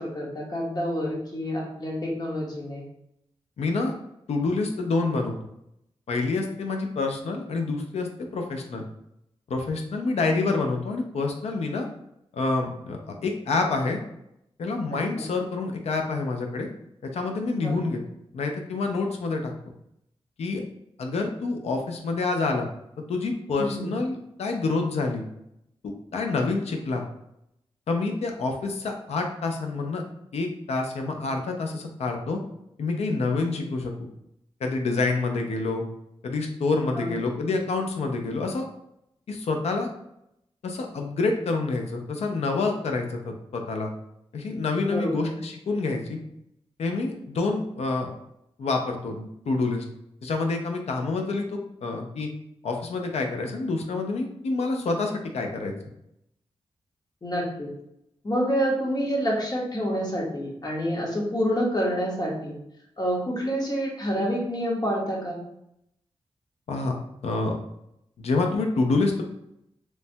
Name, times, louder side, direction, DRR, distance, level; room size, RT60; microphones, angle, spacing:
voice 1, 0.0-2.8 14.9-15.2 17.6-17.9 23.6-23.9 37.0-37.2 44.9-45.3 57.2-57.7 58.2-62.6 63.0-65.4, equal, 40° left, -2 dB, 0.9 m, -28 dB
voice 2, 3.6-3.9 4.3-5.4 6.1-8.1 8.3-8.8 9.5-11.9 12.3-14.0 14.6-16.7 17.0-18.0 18.3-19.5 20.4-20.6 21.0-22.7 23.0-25.2 25.8-27.0 27.9-30.0 30.3-32.4 32.8-34.1 34.6-35.8 36.2-38.7 39.3-39.9 40.6-43.9 44.3-46.2 46.8-48.1 48.6-49.8 50.2-52.3 52.6-55.7 66.7-67.0 67.2-67.6 68.2-69.2, left 3 dB, 90° left, 3 dB, 0.5 m, -27 dB
3.1 x 2.1 x 2.7 m, 0.79 s
wide cardioid pair, 80°, 11 cm